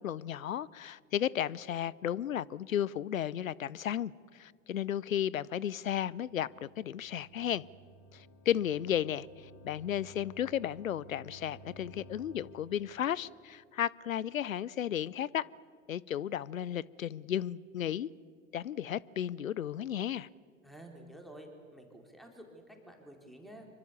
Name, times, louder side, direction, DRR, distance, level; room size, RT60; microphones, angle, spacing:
voice 1, 0.0-7.6 8.1-9.3 9.6-15.5 15.9-18.1 18.5-20.3, left 10 dB, 80° left, 0.6 m, -34 dB
sound 1, 6.0-12.9, equal, 55° left, 3.1 m, -55 dB
voice 2, 20.6-23.7, right 1 dB, ahead, 4.0 m, -51 dB
26.0 x 24.5 x 7.1 m
figure-of-eight pair, 80°, 40 cm